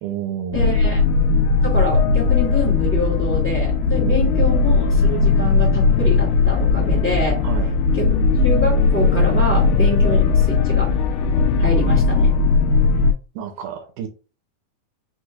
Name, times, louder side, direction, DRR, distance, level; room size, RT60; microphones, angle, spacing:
voice 1, 0.0-0.9 4.0-4.2 7.4-7.7 13.4-14.1, right 9 dB, 80° right, 2.2 m, -30 dB
sound 1, 0.5-13.1, left 4 dB, 90° left, 2.2 m, -17 dB
voice 2, 0.5-1.0 1.6-7.4 7.9-10.9 11.6-12.3, left 1 dB, 5° left, 1.6 m, -26 dB
5.9 x 3.2 x 2.4 m
omnidirectional pair, 3.7 m